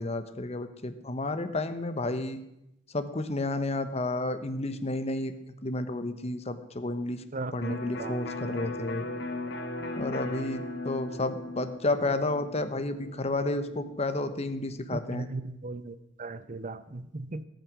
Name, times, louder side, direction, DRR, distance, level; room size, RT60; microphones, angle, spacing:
voice 1, 0.0-2.4 2.9-7.2 7.5-9.1 10.0-15.3, left 2 dB, 35° left, 1.1 m, -31 dB
voice 2, 7.3-8.2 8.5-8.6 14.9-17.4, right 2 dB, 40° right, 0.9 m, -37 dB
Electric guitar, 7.6-15.3, left 2 dB, 65° left, 1.9 m, -38 dB
19.0 x 9.2 x 6.3 m
head